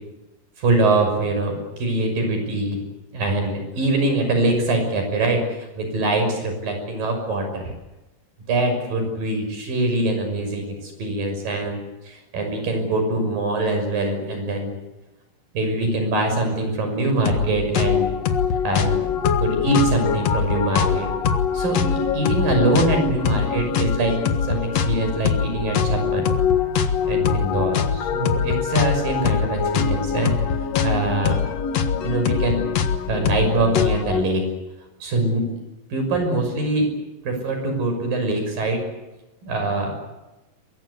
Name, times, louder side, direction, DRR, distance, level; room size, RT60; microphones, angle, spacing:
voice 1, 0.6-2.8 3.1-7.6 8.5-14.7 15.5-18.1 18.6-21.1 21.5-24.2 24.5-26.3 27.0-30.4 30.8-31.4 32.0-32.7 33.1-34.5 35.0-35.6 35.9-36.9 37.2-38.9 39.4-40.0, right 2 dB, 70° right, 5 dB, 7.7 m, -23 dB
sound 1, 17.3-17.5 17.7-34.2, left 7 dB, 55° left, 2.2 m, -23 dB
23.5 x 23.0 x 8.3 m, 1.0 s
omnidirectional pair, 4.1 m